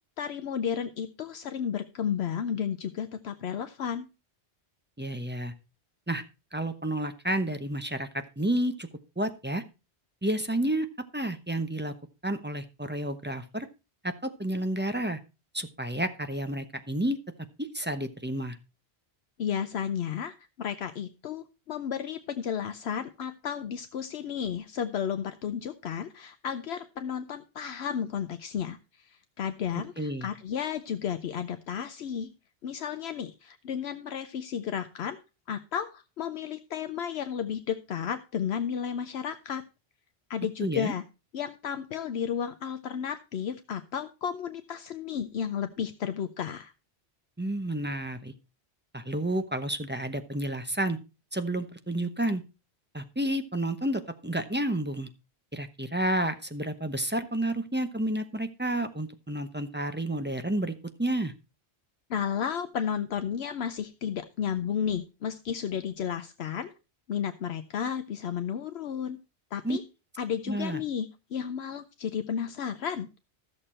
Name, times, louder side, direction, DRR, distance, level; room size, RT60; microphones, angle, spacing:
voice 1, 0.2-4.1 19.4-32.3 32.6-35.2 35.5-39.6 40.3-41.0 41.3-46.7 62.1-66.7 67.1-69.2 69.5-69.8 70.2-73.1, left 8 dB, 75° left, 9 dB, 0.9 m, -33 dB
voice 2, 5.0-5.5 6.1-6.2 6.5-8.9 9.2-9.6 10.2-10.9 11.1-11.9 12.2-13.7 14.0-15.2 15.5-17.2 17.6-18.6 30.0-30.3 40.6-40.9 47.4-48.3 48.9-51.0 51.3-52.4 52.9-55.1 55.5-61.3 69.6-69.8 70.5-70.8, right 1 dB, 10° right, 8 dB, 0.7 m, -30 dB
13.5 x 6.7 x 4.3 m, 0.30 s
omnidirectional pair, 1.1 m